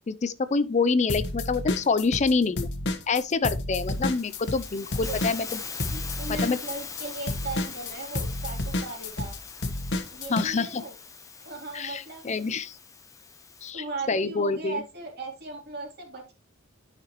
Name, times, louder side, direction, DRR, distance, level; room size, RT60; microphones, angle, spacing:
voice 1, 0.1-2.7 3.1-5.6 6.3-6.6 10.3-10.8 11.7-12.8 13.6-14.8, left 4 dB, 30° left, 0.4 m, -26 dB
sound 1, 1.1-2.3 2.6-10.5, left 2 dB, 55° left, 1.2 m, -30 dB
Hiss, 3.7-13.7, left 5 dB, 15° left, 0.9 m, -42 dB
voice 2, 5.9-9.3 10.1-10.9 11.4-12.2 13.7-16.3, right 3 dB, 50° right, 3.2 m, -37 dB
11.5 x 5.8 x 3.0 m
head